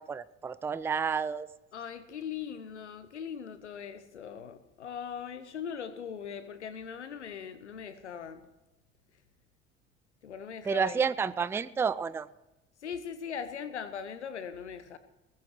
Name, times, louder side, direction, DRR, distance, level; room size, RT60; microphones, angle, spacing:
voice 1, 0.0-1.5 10.6-12.3, right 6 dB, 5° right, 17 dB, 0.4 m, -30 dB
voice 2, 1.7-8.5 10.2-11.0 12.8-15.0, left 7 dB, 85° left, 13 dB, 0.8 m, -40 dB
21.5 x 15.0 x 3.1 m, 1.0 s
figure-of-eight pair, 60°, 34 cm